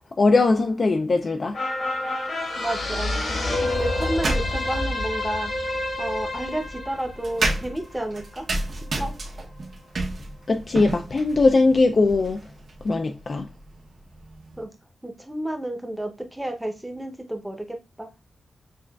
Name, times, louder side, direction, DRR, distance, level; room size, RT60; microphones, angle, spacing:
voice 1, 0.2-1.6 10.5-12.4 12.8-13.5, left 3 dB, 40° left, 0.3 m, -20 dB
sound 1, 1.5-8.2 8.6-8.7, left 2 dB, 65° left, 1.2 m, -28 dB
voice 2, 2.6-3.1 3.6-5.5 6.0-8.4 8.8-9.1 14.6-14.7 15.0-18.1, right 1 dB, 5° right, 0.7 m, -31 dB
sound 2, 3.7-4.8 6.0-14.6, right 2 dB, 55° right, 0.8 m, -32 dB
6.6 x 2.4 x 2.3 m
wide cardioid pair, 135°, 0 cm